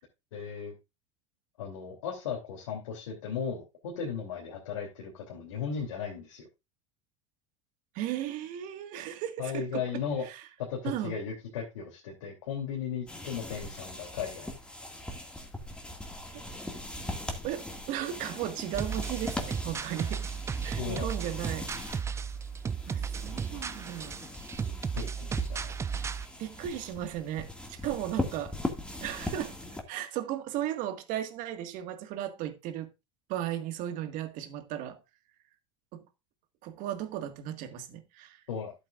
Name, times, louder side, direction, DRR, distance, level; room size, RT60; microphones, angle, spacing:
voice 1, 0.3-0.7 1.6-6.5 9.4-10.3 10.6-14.6 20.8-21.1 24.9-25.7 38.5-38.7, left 7 dB, 85° left, 3.0 m, -36 dB
voice 2, 7.9-10.4 10.8-11.2 16.3-16.4 17.4-20.2 20.6-21.7 22.9-24.2 26.4-28.6 29.0-29.6 29.9-32.9 33.3-35.0 35.9-36.0 36.6-38.4, right 11 dB, 55° right, 1.8 m, -36 dB
sound 1, 13.1-29.8, left 1 dB, 5° left, 2.1 m, -40 dB
sound 2, 18.7-26.3, right 6 dB, 15° right, 0.4 m, -35 dB
12.0 x 8.3 x 2.5 m
hypercardioid pair, 100°, 16 cm